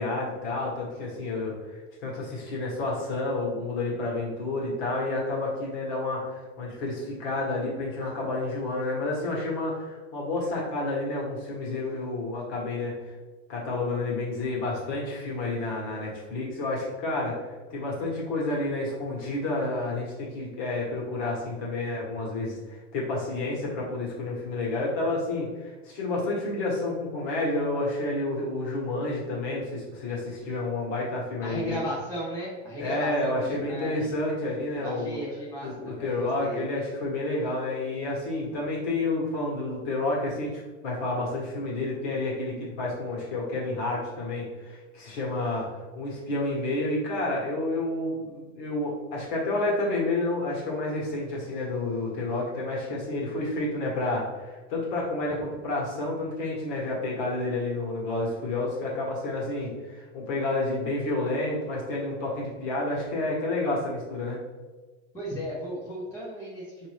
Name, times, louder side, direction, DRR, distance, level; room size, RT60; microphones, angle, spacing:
voice 1, 0.0-12.9 13.5-31.8 32.8-35.2 35.6-45.7 45.9-64.4, left 2 dB, 45° left, -3 dB, 1.4 m, -30 dB
voice 2, 31.4-34.0 34.8-36.6 65.1-66.9, equal, 10° left, -8 dB, 0.7 m, -35 dB
5.0 x 2.7 x 3.3 m, 1.3 s
supercardioid pair, 165°, 33 cm